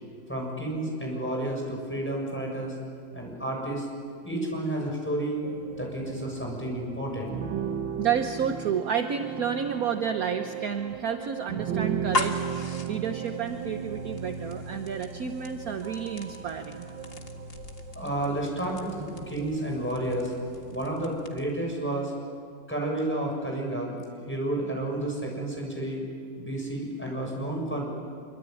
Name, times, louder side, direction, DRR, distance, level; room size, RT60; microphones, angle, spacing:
voice 1, 0.3-2.7 3.1-3.9 4.2-5.4 5.8-7.5 17.9-20.3 20.7-22.1 22.7-23.9 24.3-26.0 26.4-27.9, right 1 dB, 5° left, -1 dB, 6.8 m, -31 dB
sound 1, 5.4-21.3, right 7 dB, 85° right, 1.8 m, -37 dB
voice 2, 8.0-16.9, right 7 dB, 55° right, 7 dB, 1.3 m, -30 dB
sound 2, 11.9-21.6, left 2 dB, 35° left, 1.8 m, -39 dB
25.5 x 24.0 x 9.2 m, 2.2 s
omnidirectional pair, 2.0 m